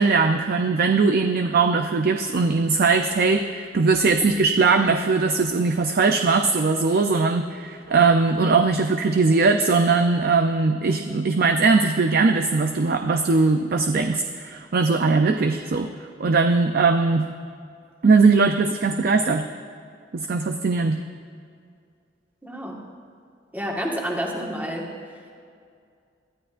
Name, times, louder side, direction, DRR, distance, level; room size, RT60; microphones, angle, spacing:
voice 1, 0.0-15.9 16.2-17.3 18.0-19.5 20.1-21.0, right 4 dB, 55° right, 6 dB, 0.5 m, -20 dB
voice 2, 22.4-22.8 23.5-24.9, equal, 10° right, -1 dB, 1.6 m, -29 dB
21.0 x 13.5 x 2.5 m, 2.3 s
head